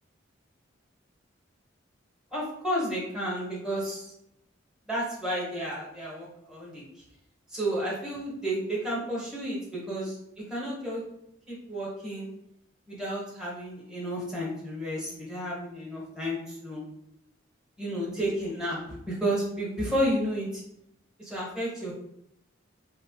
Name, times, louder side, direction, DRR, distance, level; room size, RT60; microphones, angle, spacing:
voice 1, 2.3-4.1 4.9-6.8 7.5-10.2 10.5-11.0 11.5-12.3 12.9-16.8 17.8-20.6 21.2-21.9, equal, 5° right, -7 dB, 1.3 m, -31 dB
4.4 x 2.1 x 3.1 m, 0.78 s
head